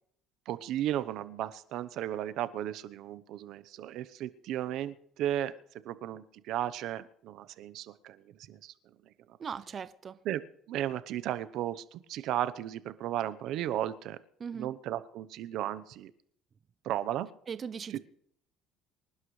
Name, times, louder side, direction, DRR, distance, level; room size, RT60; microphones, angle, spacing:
voice 1, 0.5-5.5 5.8-8.7 10.2-10.4 10.7-14.2 14.5-16.1 16.8-17.3 17.9-18.0, right 12 dB, 65° right, 0.8 m, -35 dB
voice 2, 9.4-10.2 14.4-14.7 17.5-18.0, right 6 dB, 35° right, 0.6 m, -39 dB
25.5 x 11.5 x 3.2 m
cardioid pair, 110°, 0 cm